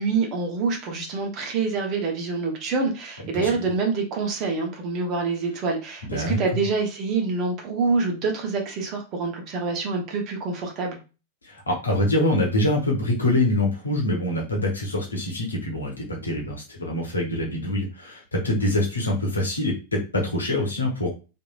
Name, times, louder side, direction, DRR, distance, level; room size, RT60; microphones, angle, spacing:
voice 1, 0.0-11.0, right 4 dB, 40° right, 2 dB, 0.9 m, -26 dB
voice 2, 6.1-6.6 11.4-21.1, left 1 dB, 75° left, 0 dB, 0.9 m, -25 dB
3.0 x 2.6 x 2.3 m, 0.32 s
figure-of-eight pair, 90°, 0 cm